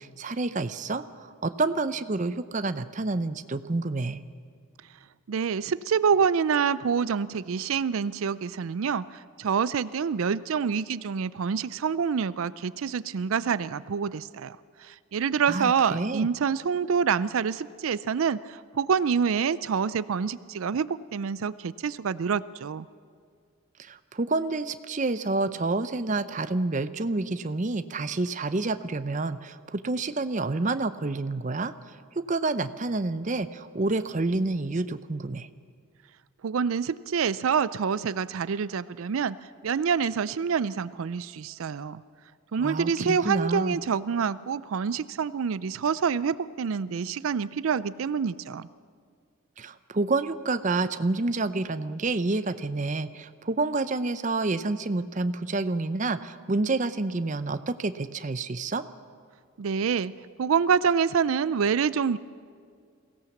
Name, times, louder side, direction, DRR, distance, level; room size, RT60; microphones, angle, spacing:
voice 1, 0.0-4.2 15.5-16.3 23.8-31.7 32.2-35.5 42.6-43.8 49.6-58.8, right 3 dB, 35° right, 12 dB, 0.6 m, -28 dB
voice 2, 5.3-22.9 36.4-39.4 39.6-42.0 42.5-48.7 59.6-60.1 60.4-62.2, right 6 dB, 80° right, 17 dB, 0.4 m, -27 dB
22.5 x 16.5 x 7.2 m, 2.2 s
head